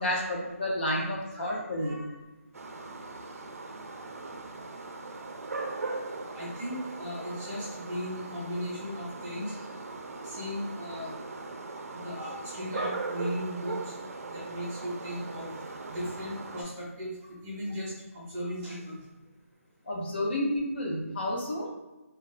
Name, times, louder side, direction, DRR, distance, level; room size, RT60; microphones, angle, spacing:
voice 1, 0.0-2.0 19.9-21.7, left 1 dB, 45° left, -3 dB, 0.6 m, -30 dB
voice 2, 1.3-2.2 3.1-3.5 3.9-4.1 4.6-5.0 6.3-9.7 10.1-11.2 12.0-13.9 14.2-15.6 15.9-19.0, equal, 15° right, -9 dB, 0.6 m, -37 dB
sound 1, 2.5-16.6, right 3 dB, 75° right, 0.4 m, -39 dB
2.3 x 2.3 x 3.1 m, 1.1 s
hypercardioid pair, 170°, 8 cm